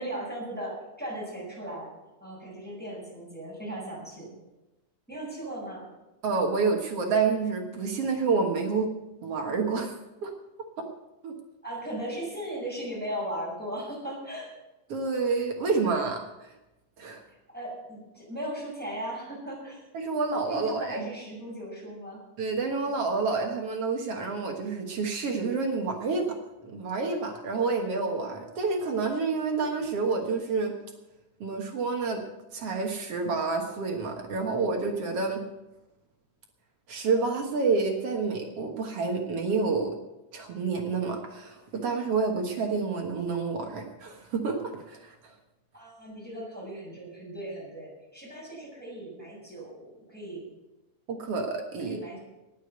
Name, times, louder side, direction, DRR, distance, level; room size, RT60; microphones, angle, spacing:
voice 1, 0.0-1.9 2.2-4.3 5.1-5.9 11.6-14.5 17.5-19.8 20.5-22.2 45.7-50.4 51.8-52.2, right 1 dB, 5° left, -5 dB, 6.5 m, -37 dB
voice 2, 6.2-8.9 9.2-9.9 10.2-10.3 11.2-11.3 14.9-16.5 17.0-17.2 19.9-21.1 22.4-26.4 26.6-30.7 31.4-32.2 32.5-35.4 36.9-39.9 40.3-45.3 51.1-52.0, right 4 dB, 55° right, 3 dB, 2.1 m, -28 dB
19.0 x 6.9 x 8.0 m, 1.0 s
omnidirectional pair, 3.7 m